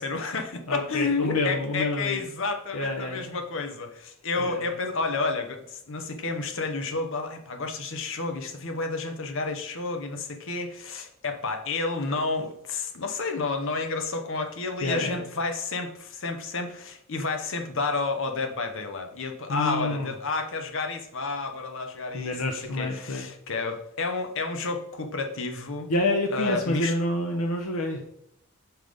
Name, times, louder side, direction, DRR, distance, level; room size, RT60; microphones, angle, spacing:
voice 1, 0.0-22.4 22.7-25.9 26.3-26.9, left 3 dB, 60° left, 5 dB, 1.0 m, -30 dB
voice 2, 0.7-2.2 2.7-3.3 4.4-4.7 14.8-15.2 19.5-20.1 22.1-23.3 25.9-28.0, left 2 dB, 85° left, 2 dB, 0.9 m, -28 dB
5.7 x 5.6 x 5.1 m, 0.75 s
head